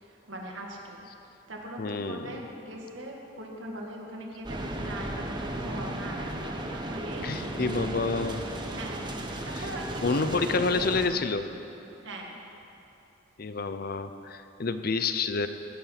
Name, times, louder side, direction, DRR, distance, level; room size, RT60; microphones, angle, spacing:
voice 1, 0.0-1.1 1.5-7.9 8.7-10.9 11.3-11.4 12.0-12.4, right 1 dB, 70° right, 0 dB, 1.9 m, -40 dB
voice 2, 1.8-2.3 7.2-8.4 9.5-9.7 10.0-11.5 13.4-15.5, left 4 dB, 50° left, 10 dB, 0.6 m, -28 dB
sound 1, 4.4-11.1, right 1 dB, 25° right, 1.0 m, -35 dB
17.5 x 8.6 x 5.8 m, 2.9 s
head